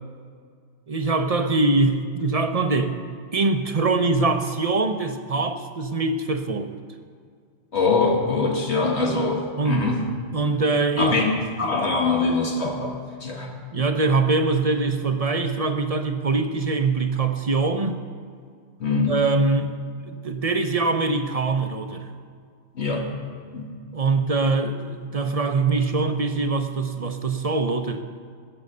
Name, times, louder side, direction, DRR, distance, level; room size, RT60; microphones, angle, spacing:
voice 1, 0.9-2.9 3.3-6.7 9.6-9.8 10.3-11.2 11.6-11.7 13.7-18.0 19.1-19.7 20.2-22.1 23.9-28.0, right 3 dB, 40° right, 7 dB, 0.7 m, -23 dB
voice 2, 7.7-10.0 11.0-13.9 18.8-19.2 22.7-23.1 23.5-23.7, left 3 dB, 80° left, 0 dB, 1.8 m, -23 dB
15.5 x 8.0 x 6.6 m, 2.1 s
omnidirectional pair, 1.1 m